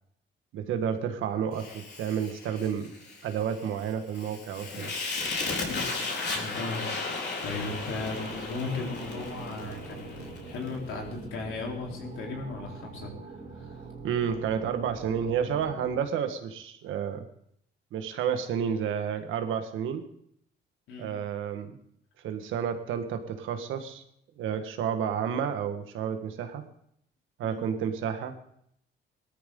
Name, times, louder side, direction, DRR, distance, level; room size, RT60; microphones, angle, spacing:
voice 1, 0.5-2.9 3.2-4.9 14.0-17.2 17.9-20.0 21.0-21.8 22.2-24.0 24.4-26.6 27.4-28.4, right 8 dB, 85° right, 7 dB, 1.5 m, -30 dB
Fire, 1.5-10.8, left 3 dB, 60° left, 3.9 m, -35 dB
voice 2, 5.6-13.8 20.9-21.1 27.4-27.6, left 3 dB, 85° left, -1 dB, 3.8 m, -37 dB
sound 1, 7.4-16.0, right 3 dB, 40° right, 4.0 m, -44 dB
18.5 x 13.5 x 3.8 m, 0.71 s
cardioid pair, 90°, 20 cm